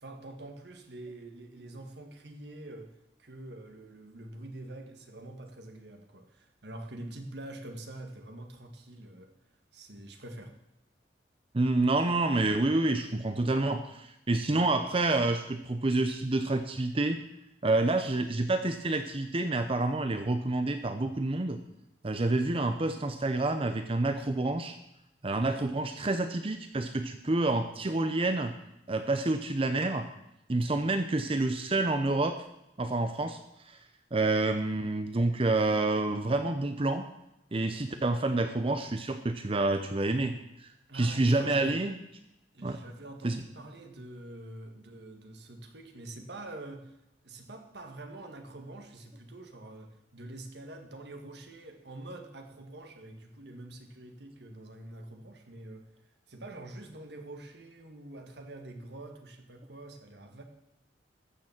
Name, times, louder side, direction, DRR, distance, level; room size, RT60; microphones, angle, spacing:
voice 1, 0.0-2.9 3.2-9.3 9.7-10.5 40.9-41.9 42.5-46.9 47.2-55.9 56.3-60.4, right 1 dB, 65° right, 5 dB, 1.8 m, -45 dB
voice 2, 11.5-17.2 17.6-21.6 22.0-24.8 25.2-28.5 28.9-30.1 30.5-32.4 32.8-33.4 33.6-33.8 34.1-37.1 37.5-40.3 40.6-42.0 42.6-42.8 43.2-43.4, right 2 dB, 30° right, 8 dB, 0.7 m, -28 dB
14.0 x 6.9 x 7.3 m, 0.85 s
head